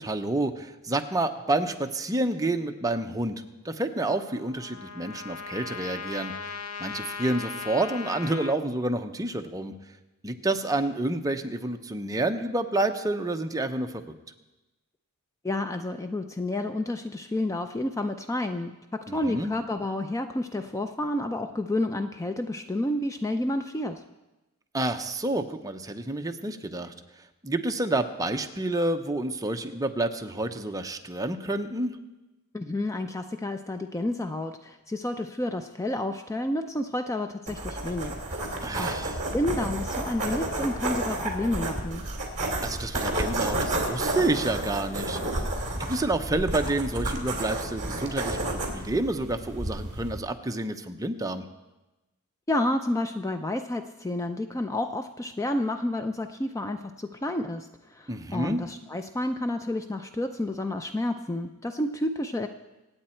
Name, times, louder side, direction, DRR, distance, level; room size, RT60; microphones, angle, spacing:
voice 1, 0.0-3.4 3.6-6.5 6.8-9.7 10.2-14.1 19.1-19.5 24.7-26.9 27.4-31.9 38.6-39.2 42.6-45.4 45.8-51.4 58.1-58.6, right 2 dB, 15° right, 6 dB, 0.8 m, -29 dB
Trumpet, 4.0-8.6, left 5 dB, 75° left, 0.7 m, -38 dB
voice 2, 15.4-24.0 32.5-38.5 38.8-38.9 39.3-42.1 52.5-57.7 57.9-62.5, left 1 dB, 15° left, 8 dB, 0.4 m, -30 dB
sound 1, 37.5-50.2, right 1 dB, 35° right, 2.6 m, -31 dB
25.5 x 8.9 x 4.4 m, 1.0 s
head